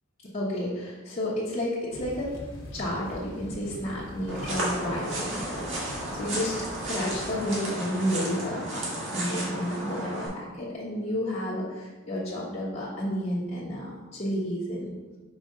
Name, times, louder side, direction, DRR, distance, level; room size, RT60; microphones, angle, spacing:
voice 1, 0.2-2.3 2.7-6.6 6.8-8.9 9.1-14.9, equal, 35° left, -10 dB, 1.2 m, -31 dB
Thunder / Rain, 1.9-7.4, equal, 80° left, 1.1 m, -43 dB
sound 1, 4.3-10.3, right 1 dB, 65° right, 1.8 m, -33 dB
5.3 x 5.0 x 3.7 m, 1.3 s
head